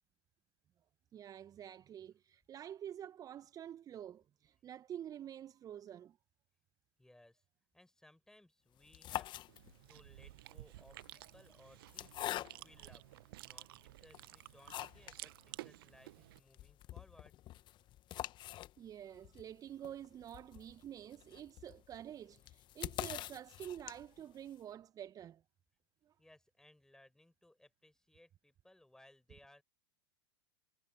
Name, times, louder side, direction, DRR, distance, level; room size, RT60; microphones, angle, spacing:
voice 1, 1.1-6.2 18.8-25.4 26.0-26.1, right 10 dB, 25° right, 0.8 m, -48 dB
voice 2, 7.0-7.4 7.7-13.0 13.4-17.3 26.2-29.6, left 1 dB, 5° left, 4.5 m, -64 dB
sound 1, 8.8-10.0 10.8-12.9 13.5-13.6 14.1-15.2 15.6-15.7 15.9-16.0 16.4-24.3, left 14 dB, 35° left, 1.2 m, -45 dB
Chewing mastication, 9.5-16.4, right 17 dB, 60° right, 1.0 m, -53 dB
hypercardioid pair, 95°, 14 cm